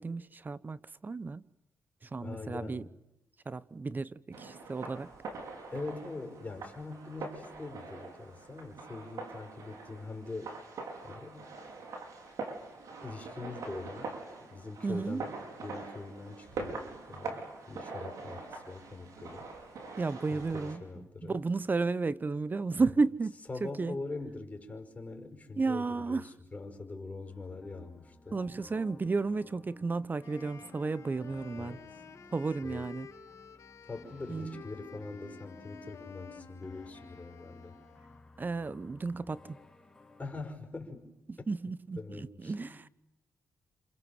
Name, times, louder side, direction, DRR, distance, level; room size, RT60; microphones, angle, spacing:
voice 1, 0.0-1.4 2.0-2.9 3.5-5.1 14.8-15.2 20.0-24.0 25.6-26.3 28.3-31.8 32.3-33.1 34.3-34.6 38.4-39.6 41.3-42.9, right 4 dB, 35° right, 1.0 m, -33 dB
voice 2, 2.2-2.9 5.7-10.6 11.0-11.5 13.0-19.5 20.3-21.4 22.8-23.0 23.5-28.4 31.5-31.9 32.6-32.9 33.9-37.8 40.2-41.1 41.4-41.5 42.0-42.8, left 3 dB, 25° left, 5.5 m, -43 dB
sound 1, 4.3-20.8, right 3 dB, 75° right, 5.3 m, -43 dB
sound 2, 27.2-40.5, left 2 dB, 10° left, 4.2 m, -56 dB
Wind instrument woodwind instrument, 30.2-38.3, left 7 dB, 65° left, 2.4 m, -52 dB
28.0 x 26.5 x 7.4 m
cardioid pair, 70°, 6 cm